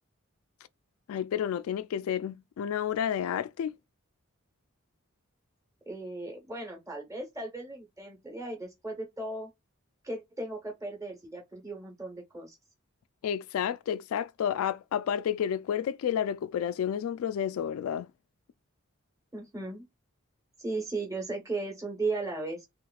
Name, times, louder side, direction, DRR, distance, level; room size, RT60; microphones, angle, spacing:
voice 1, 1.1-3.7 13.2-18.1, left 9 dB, 85° left, 0.3 m, -30 dB
voice 2, 5.9-9.5 10.0-12.6 19.3-19.9 20.6-22.7, right 2 dB, 15° right, 1.1 m, -36 dB
3.4 x 3.0 x 2.3 m
head